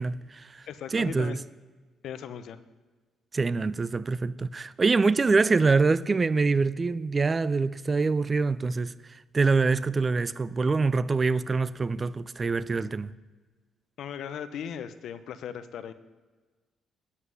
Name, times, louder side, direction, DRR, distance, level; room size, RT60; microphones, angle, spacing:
voice 1, 0.0-0.6 0.9-1.4 3.3-8.9 9.3-13.1, right 4 dB, 30° right, 0.4 m, -25 dB
voice 2, 0.7-1.4 2.0-2.6 14.0-15.9, left 8 dB, 75° left, 0.6 m, -38 dB
9.7 x 5.7 x 7.7 m
cardioid pair, 90°, 0 cm